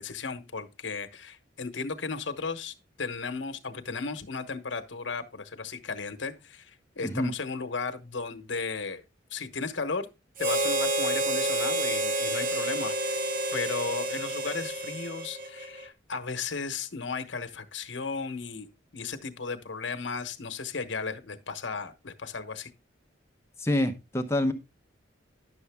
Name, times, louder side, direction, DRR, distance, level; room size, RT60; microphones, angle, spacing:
voice 1, 0.0-9.0 9.3-10.1 10.4-13.2 13.5-18.7 18.9-22.7, left 4 dB, 70° left, 1.1 m, -35 dB
voice 2, 7.0-7.3 23.6-24.5, left 1 dB, 15° left, 0.8 m, -27 dB
Harmonica, 10.4-15.9, right 1 dB, 45° right, 0.7 m, -29 dB
11.0 x 6.9 x 3.5 m
head